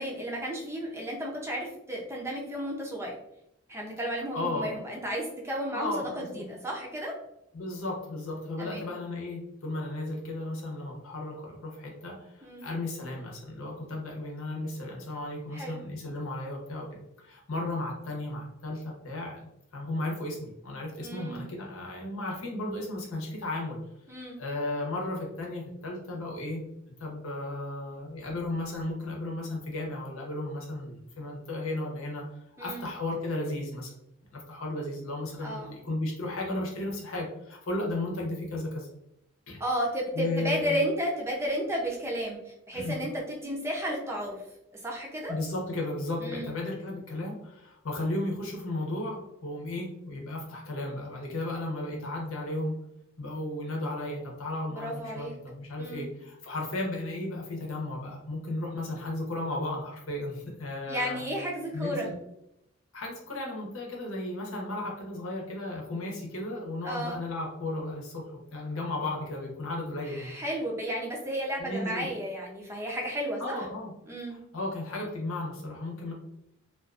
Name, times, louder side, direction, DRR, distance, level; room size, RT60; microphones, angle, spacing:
voice 1, 0.0-3.1 3.7-7.1 8.6-8.9 12.4-12.7 15.5-15.8 21.0-21.5 24.1-24.4 32.6-32.9 35.4-35.7 39.6-44.4 44.8-45.3 46.2-46.5 54.7-55.3 55.8-56.1 60.9-62.1 66.8-67.2 70.1-73.6 74.1-74.4, equal, 15° right, -2 dB, 0.5 m, -33 dB
voice 2, 4.3-4.7 5.7-6.4 7.5-16.9 17.2-19.4 19.7-23.8 24.4-26.6 27.0-32.2 32.6-33.9 34.3-38.9 39.5-39.6 40.1-40.8 42.7-43.0 45.3-52.7 53.2-61.2 61.7-62.1 62.9-70.3 71.6-72.1 73.4-73.9 74.5-76.1, left 2 dB, 90° left, -1 dB, 0.8 m, -34 dB
2.5 x 2.4 x 2.4 m, 0.80 s
head